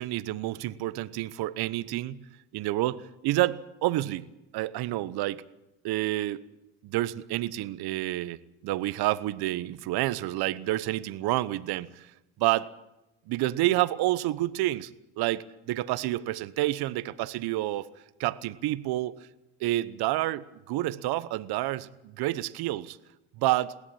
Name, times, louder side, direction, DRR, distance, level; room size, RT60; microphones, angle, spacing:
voice 1, 0.0-2.2 2.5-4.2 4.5-5.4 5.8-6.4 6.8-12.1 12.4-12.7 13.3-14.9 15.2-17.9 18.2-19.1 19.6-23.0 23.4-23.7, right 16 dB, 60° right, 16 dB, 1.0 m, -29 dB
21.5 x 17.0 x 8.8 m, 0.91 s
hypercardioid pair, 65°, 43 cm